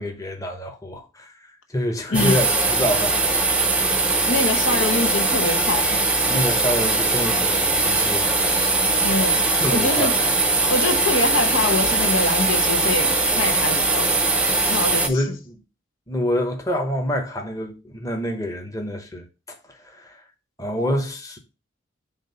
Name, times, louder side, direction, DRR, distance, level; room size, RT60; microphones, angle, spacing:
voice 1, 0.0-3.3 6.3-8.7 9.6-10.3 15.0-15.6 16.1-19.6 19.8-20.2 20.6-21.4, equal, 15° left, 1.0 m, -27 dB
voice 2, 2.1-2.4 4.2-6.0 9.0-10.1 10.7-14.4 14.7-15.2, left 2 dB, 80° left, 0.9 m, -25 dB
sound 1, 2.1-15.1, right 3 dB, 5° right, 0.6 m, -20 dB
7.1 x 2.6 x 5.6 m
head